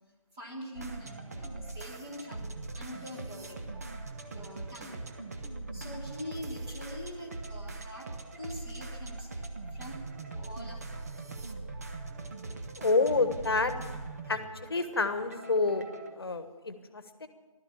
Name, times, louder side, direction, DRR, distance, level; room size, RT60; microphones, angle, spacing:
voice 1, 0.3-3.9 4.3-5.0 5.7-10.0 10.3-11.1, equal, 10° right, -3 dB, 1.3 m, -44 dB
sound 1, 0.7-16.1, right 3 dB, 25° right, 0.9 m, -41 dB
voice 2, 12.8-13.7 14.3-14.4 14.7-17.3, left 3 dB, 45° left, 9 dB, 1.3 m, -28 dB
15.0 x 12.5 x 7.2 m, 1.2 s
figure-of-eight pair, 160°, 18 cm